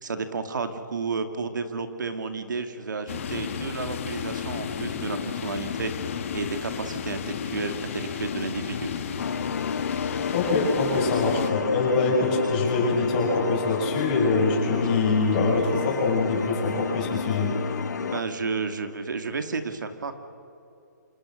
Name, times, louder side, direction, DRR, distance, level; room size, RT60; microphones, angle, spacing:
voice 1, 0.0-5.9 6.3-8.9 18.0-20.1, right 4 dB, 80° right, 7 dB, 2.3 m, -31 dB
sound 1, 3.1-11.5, left 7 dB, 45° left, 2.1 m, -33 dB
sound 2, 9.2-18.2, left 6 dB, 65° left, 1.5 m, -31 dB
voice 2, 10.3-17.5, left 3 dB, 25° left, -2 dB, 7.2 m, -24 dB
28.0 x 27.5 x 6.5 m, 2.8 s
hypercardioid pair, 170°, 10 cm